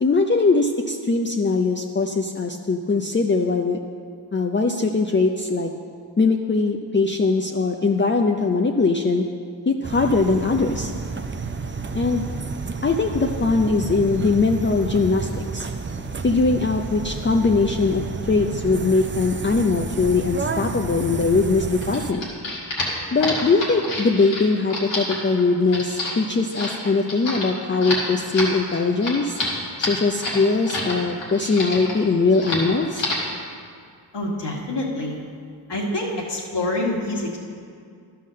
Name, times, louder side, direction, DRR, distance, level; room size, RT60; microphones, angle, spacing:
voice 1, 0.0-3.8 4.3-5.7 6.2-9.3 9.7-10.9 11.9-12.2 12.8-15.7 16.2-22.2 23.1-29.4 29.8-33.0, left 3 dB, 25° left, 2 dB, 0.6 m, -21 dB
sound 1, 9.8-22.1, right 4 dB, 25° right, 0.6 m, -31 dB
sound 2, 21.8-30.9 31.2-32.0 32.3-32.7 32.9-33.3, left 2 dB, 85° left, 2.2 m, -28 dB
voice 2, 34.1-35.2 35.7-37.4, left 1 dB, 65° left, -2 dB, 2.1 m, -26 dB
11.5 x 5.8 x 6.4 m, 2.2 s
cardioid pair, 50°, 44 cm